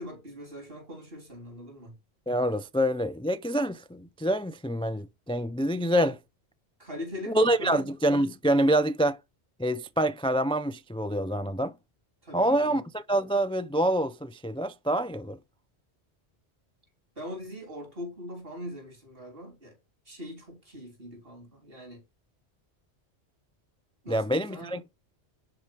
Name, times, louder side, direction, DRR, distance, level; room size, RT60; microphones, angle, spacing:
voice 1, 0.0-2.0 6.8-7.9 12.2-12.8 17.2-19.8 20.1-22.0 24.0-24.8, left 1 dB, 55° right, 4.0 m, -41 dB
voice 2, 2.3-6.2 7.3-9.2 9.6-11.7 12.3-15.4 24.1-24.8, right 1 dB, 10° left, 0.3 m, -26 dB
10.5 x 4.9 x 6.1 m
omnidirectional pair, 1.1 m